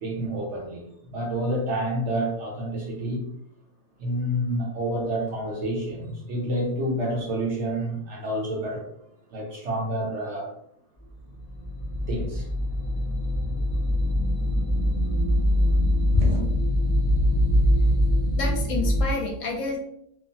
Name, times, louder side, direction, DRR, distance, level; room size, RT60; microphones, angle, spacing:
voice 1, 0.0-3.2 4.0-8.9 9.3-10.5 12.1-12.5 16.1-16.5, equal, 60° right, 0.9 m, -28 dB
sound 1, 11.3-19.0, equal, 25° right, 0.7 m, -23 dB
voice 2, 17.5-18.0 18.4-19.8, left 2 dB, 70° left, 0.9 m, -30 dB
3.0 x 2.0 x 2.6 m
omnidirectional pair, 1.5 m